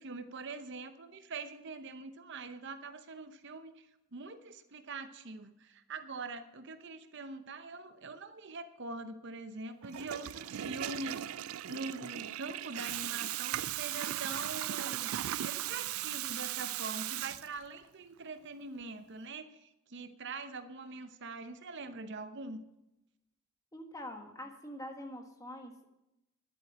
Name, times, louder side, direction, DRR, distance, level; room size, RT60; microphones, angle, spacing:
voice 1, 0.0-11.4 11.7-15.1 15.4-22.6, right 3 dB, 55° right, 10 dB, 0.8 m, -43 dB
Water tap faucet / Toilet flush, 9.8-17.9, right 12 dB, 80° right, 0.4 m, -37 dB
voice 2, 23.7-25.9, left 1 dB, 15° left, 4 dB, 1.4 m, -45 dB
11.0 x 8.3 x 8.0 m, 0.90 s
head